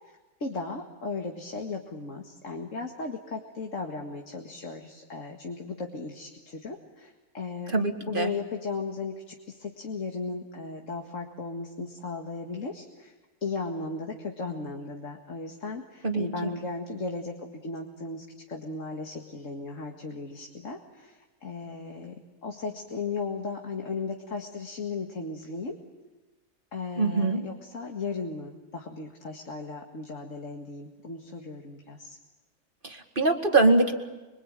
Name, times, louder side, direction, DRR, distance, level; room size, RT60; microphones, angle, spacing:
voice 1, 0.4-7.8 8.1-13.1 13.4-25.8 26.7-32.2, left 4 dB, 60° left, 2 dB, 2.3 m, -36 dB
voice 2, 7.7-8.3 16.0-16.5 27.0-27.5 32.8-34.0, right 3 dB, 35° right, 5 dB, 2.3 m, -24 dB
26.5 x 24.0 x 9.0 m, 1.2 s
omnidirectional pair, 1.5 m